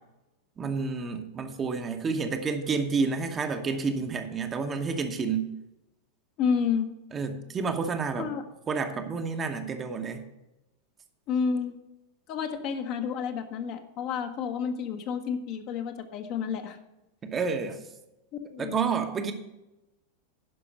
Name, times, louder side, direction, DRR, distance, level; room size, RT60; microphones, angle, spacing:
voice 1, 0.6-5.5 7.1-8.3 8.7-10.2 17.2-17.8 18.6-19.3, right 5 dB, 20° right, 6 dB, 1.0 m, -29 dB
voice 2, 6.4-6.9 8.2-8.4 11.3-11.8 12.3-16.8 18.5-18.8, left 6 dB, 40° left, 6 dB, 1.1 m, -30 dB
11.0 x 5.5 x 6.5 m, 0.95 s
figure-of-eight pair, 90°, 0 cm